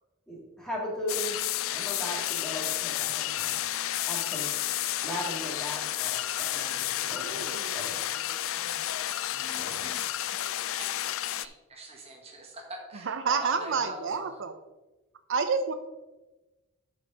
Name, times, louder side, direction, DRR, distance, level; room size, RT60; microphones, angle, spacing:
voice 1, 0.3-1.4 1.7-3.6 4.0-4.6 5.0-8.0 9.5-9.9, equal, 5° left, -4 dB, 2.6 m, -38 dB
sound 1, 1.1-11.5, left 13 dB, 65° left, 0.4 m, -31 dB
voice 2, 7.0-8.4 13.0-14.5 15.3-15.7, right 5 dB, 60° right, 9 dB, 0.5 m, -30 dB
voice 3, 9.3-10.5 10.8-10.9 11.2-14.4, right 1 dB, 30° right, 1 dB, 1.4 m, -45 dB
11.5 x 5.2 x 4.0 m, 1.1 s
head